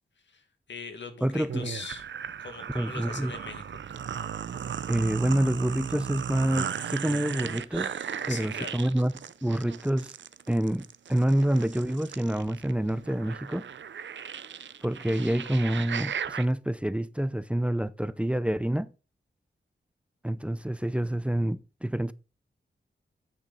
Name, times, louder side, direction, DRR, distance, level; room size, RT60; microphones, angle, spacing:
voice 1, 0.2-2.0 2.4-3.8 8.3-8.7, left 5 dB, 75° left, 1.9 m, -41 dB
voice 2, 1.2-1.7 2.7-3.3 4.9-7.9 8.3-9.1 9.4-10.1 10.5-13.6 14.8-18.9 20.2-22.1, right 1 dB, 5° right, 0.5 m, -27 dB
sound 1, 1.5-16.5, right 8 dB, 80° right, 0.6 m, -36 dB
10.0 x 9.0 x 4.0 m
wide cardioid pair, 145°, 19 cm